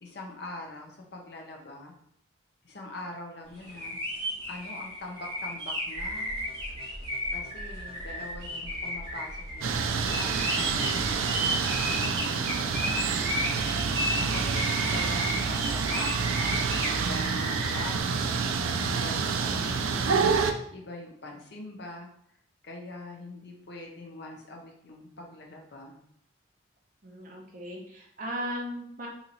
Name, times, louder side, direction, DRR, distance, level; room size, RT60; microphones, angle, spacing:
voice 1, 0.0-2.0 2.6-4.0 4.5-6.3 7.3-10.7 11.4-13.6 14.2-16.5 16.9-18.4 18.9-20.2 20.7-22.1 22.6-26.0, left 2 dB, 55° left, 1 dB, 0.7 m, -43 dB
sound 1, 3.6-17.9, left 1 dB, 25° right, 1.3 m, -34 dB
sound 2, 5.9-11.9, right 1 dB, 75° left, 0.9 m, -45 dB
sound 3, 9.6-20.5, right 5 dB, 85° right, 0.4 m, -28 dB
voice 2, 27.0-29.1, equal, 40° right, 0 dB, 0.7 m, -37 dB
2.9 x 2.8 x 4.0 m, 0.69 s
head